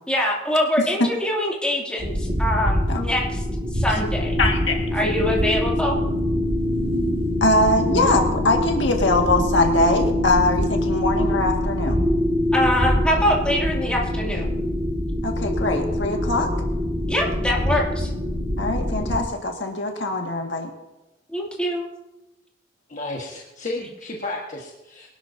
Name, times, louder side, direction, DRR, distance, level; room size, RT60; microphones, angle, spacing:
voice 1, 0.1-3.4 3.7-4.4 4.9-5.9 12.5-14.5 17.1-18.1 21.3-21.8, left 1 dB, 5° left, -3 dB, 2.7 m, -24 dB
sound 1, 2.0-19.2, left 1 dB, 30° right, 2.0 m, -24 dB
voice 2, 4.4-4.8 7.4-12.0 15.2-16.5 18.6-20.7, left 2 dB, 70° left, 2 dB, 1.9 m, -22 dB
voice 3, 22.9-25.1, left 2 dB, 40° left, -2 dB, 1.5 m, -32 dB
23.0 x 12.0 x 2.8 m, 1.0 s
head